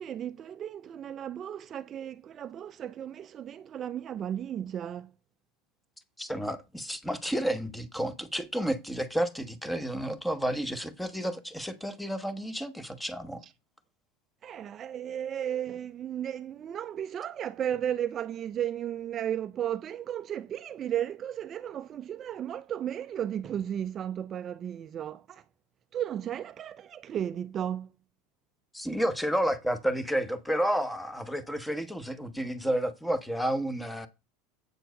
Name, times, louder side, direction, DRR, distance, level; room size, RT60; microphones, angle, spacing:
voice 1, 0.0-5.1 13.4-13.5 14.4-25.4 25.9-27.9, right 10 dB, 35° right, 0.4 m, -34 dB
voice 2, 6.2-13.4 28.7-34.1, equal, 5° left, 1.0 m, -31 dB
8.0 x 4.4 x 6.3 m
supercardioid pair, 130°, 0 cm